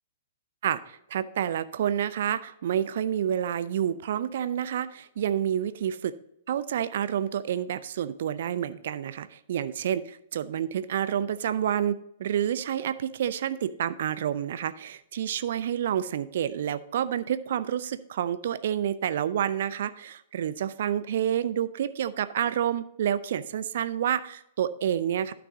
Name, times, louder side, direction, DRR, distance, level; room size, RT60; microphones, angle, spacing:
voice 1, 0.6-6.1 6.5-25.3, right 9 dB, 55° right, 15 dB, 0.5 m, -29 dB
12.0 x 6.0 x 3.8 m, 0.76 s
figure-of-eight pair, 110°, 0 cm